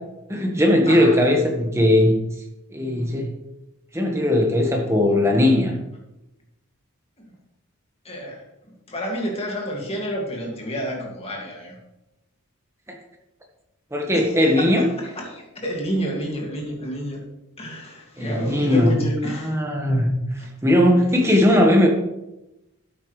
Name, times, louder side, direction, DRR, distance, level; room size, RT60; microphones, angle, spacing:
voice 1, 0.3-2.2 2.7-3.3 3.9-5.7 13.9-14.8 18.2-18.9 19.4-20.1 20.6-21.9, left 1 dB, 10° right, 1 dB, 1.5 m, -18 dB
voice 2, 0.9-1.2 7.2-7.4 8.0-11.8 14.1-17.2 17.6-19.6 20.4-20.5 21.3-21.5, equal, 25° left, -1 dB, 2.3 m, -30 dB
13.0 x 8.7 x 3.3 m, 0.94 s
head